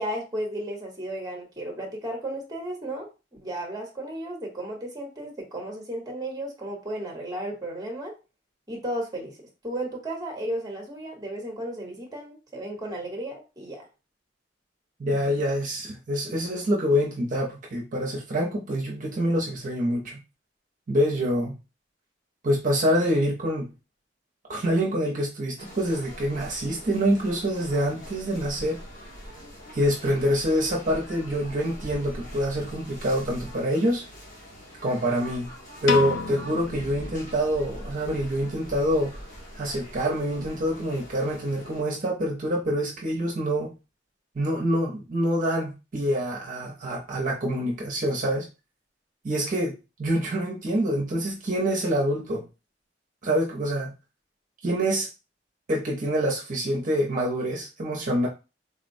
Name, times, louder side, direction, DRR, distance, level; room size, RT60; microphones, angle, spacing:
voice 1, 0.0-3.1 3.4-8.2 8.7-9.4 9.6-13.9, right 1 dB, 20° right, 1 dB, 0.9 m, -34 dB
voice 2, 15.0-20.2 20.9-21.6 22.4-23.7 24.5-28.8 29.7-34.0 34.8-35.5 35.8-39.2 39.6-43.7 44.3-48.5 49.2-52.4 53.2-53.9 54.6-55.1 55.7-58.3, equal, 45° right, -2 dB, 0.6 m, -26 dB
sound 1, 25.6-41.8, equal, 50° left, 1.5 m, -42 dB
Piano, 35.9-38.1, left 5 dB, 90° left, 0.4 m, -31 dB
3.7 x 2.1 x 2.6 m, 0.29 s
head